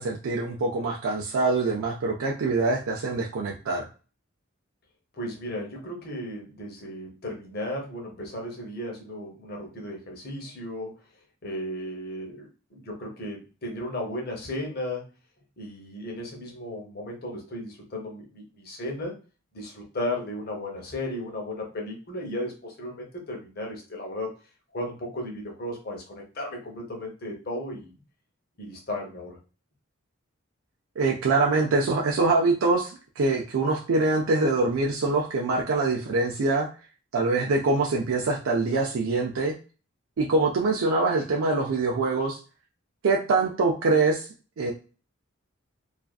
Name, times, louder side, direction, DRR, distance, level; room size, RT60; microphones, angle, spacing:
voice 1, 0.0-3.8 31.0-36.7 37.1-39.5 40.2-42.4 43.0-44.3 44.6-44.7, right 3 dB, 80° right, 0 dB, 0.4 m, -24 dB
voice 2, 5.1-10.9 11.4-15.0 15.6-19.1 19.5-24.3 24.7-27.9 28.6-29.4, left 1 dB, 45° left, 0 dB, 0.7 m, -35 dB
2.4 x 2.3 x 2.3 m, 0.35 s
head